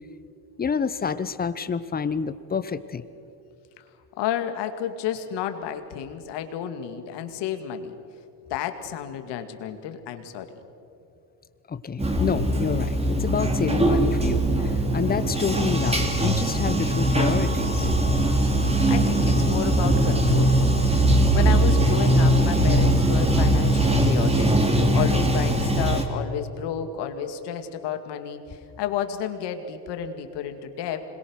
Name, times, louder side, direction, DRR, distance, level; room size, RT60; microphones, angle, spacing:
voice 1, 0.6-3.0 11.7-17.9, left 6 dB, 20° left, 13 dB, 0.9 m, -27 dB
voice 2, 4.2-8.0 8.5-10.5 18.5-31.0, left 9 dB, 60° left, 7 dB, 2.3 m, -31 dB
Bathtub (filling or washing), 12.0-26.0, right 1 dB, 15° right, 2.8 m, -21 dB
26.5 x 21.5 x 6.5 m, 2.8 s
supercardioid pair, 100°, 47 cm